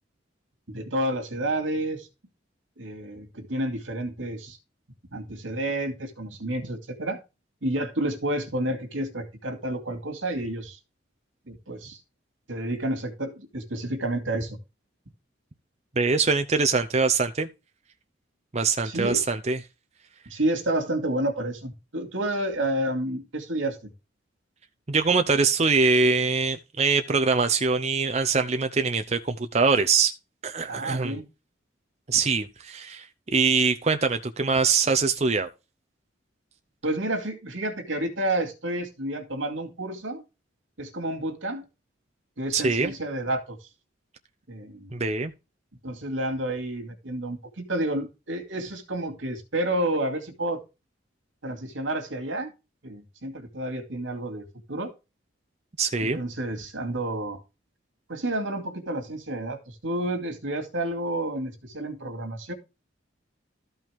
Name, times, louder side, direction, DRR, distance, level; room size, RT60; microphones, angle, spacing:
voice 1, 0.7-2.1 2.8-4.6 5.1-7.2 7.6-10.8 11.5-12.0 12.5-14.6 18.8-19.2 20.3-23.8 30.7-31.2 36.8-40.2 40.8-41.6 42.4-43.6 44.5-44.9 45.8-50.6 51.4-52.5 52.8-54.9 56.0-57.4 58.1-62.5, right 1 dB, 80° right, 2.5 m, -30 dB
voice 2, 16.0-17.5 18.5-19.6 24.9-30.1 30.4-31.1 32.1-35.5 42.5-42.9 44.9-45.3 55.8-56.2, right 4 dB, 35° right, 0.7 m, -23 dB
13.5 x 5.6 x 3.6 m
head